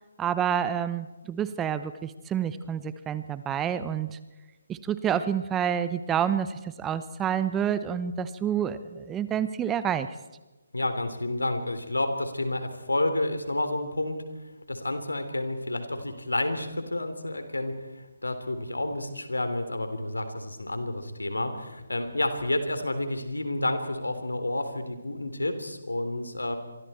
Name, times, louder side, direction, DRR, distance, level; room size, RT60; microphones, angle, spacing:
voice 1, 0.2-4.2 4.7-10.1, right 9 dB, 10° right, 13 dB, 0.9 m, -28 dB
voice 2, 10.7-14.2 14.7-26.6, left 1 dB, 90° left, 8 dB, 3.5 m, -30 dB
27.0 x 23.5 x 4.5 m, 1.1 s
figure-of-eight pair, 150°, 0 cm